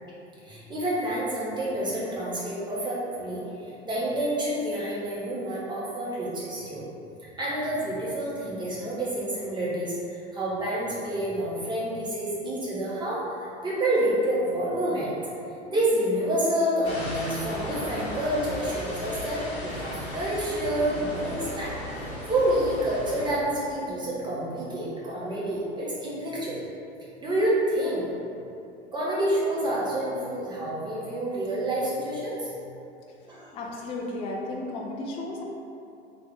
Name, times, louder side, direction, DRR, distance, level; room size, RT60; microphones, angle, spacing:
voice 1, 0.4-6.8 7.4-15.1 15.7-21.8 22.3-26.6 27.2-28.0 28.9-32.6 33.3-33.5, right 1 dB, 15° right, -7 dB, 1.0 m, -28 dB
sound 1, 16.8-23.3, left 1 dB, 85° left, 0.9 m, -36 dB
voice 2, 33.5-35.4, left 2 dB, 20° left, -1 dB, 0.3 m, -34 dB
3.1 x 2.4 x 3.7 m, 2.6 s
hypercardioid pair, 90°, 32 cm